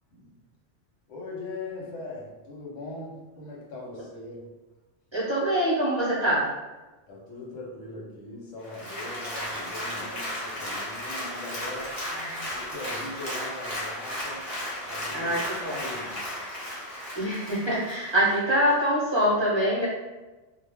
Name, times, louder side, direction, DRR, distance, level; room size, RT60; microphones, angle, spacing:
voice 1, 1.1-4.5 7.1-12.0 12.5-14.5 14.8-15.3 15.6-16.3, left 2 dB, 80° left, -3 dB, 1.1 m, -40 dB
voice 2, 5.1-6.5 9.6-9.7 10.0-10.2 12.1-12.4 15.1-15.8 17.1-19.9, equal, 30° right, -8 dB, 0.5 m, -25 dB
Applause, 8.6-18.4 18.8-18.9, left 1 dB, 20° left, 0.7 m, -35 dB
2.4 x 2.0 x 3.3 m, 1.2 s
omnidirectional pair, 1.3 m